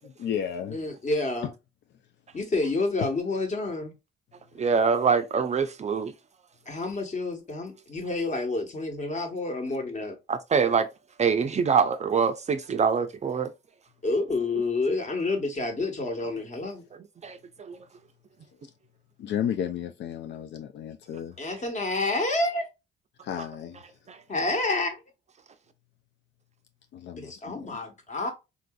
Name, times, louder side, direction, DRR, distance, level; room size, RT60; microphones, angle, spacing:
voice 1, 0.0-0.8 19.2-21.3 23.2-23.8 26.9-27.8, left 9 dB, 65° left, 0.4 m, -33 dB
voice 2, 0.7-1.5 2.3-3.9 6.7-10.1 14.0-16.8 21.4-22.7 24.3-25.0 27.2-28.3, left 2 dB, 35° left, 1.2 m, -29 dB
voice 3, 4.6-6.1 10.3-10.9 11.2-13.5 17.2-17.8 23.4-23.5 24.1-24.2, right 6 dB, 35° right, 0.4 m, -24 dB
3.8 x 2.6 x 2.2 m
cardioid pair, 90°, 20 cm